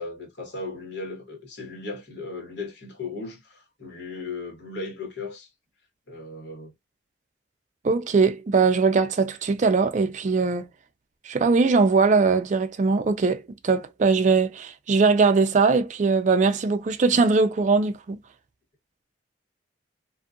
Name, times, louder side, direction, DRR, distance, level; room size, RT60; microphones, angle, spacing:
voice 1, 0.0-5.5 6.1-6.7, left 3 dB, 75° left, 1.3 m, -36 dB
voice 2, 7.8-10.7 11.3-18.2, right 4 dB, 40° right, 0.3 m, -21 dB
2.6 x 2.4 x 2.4 m
head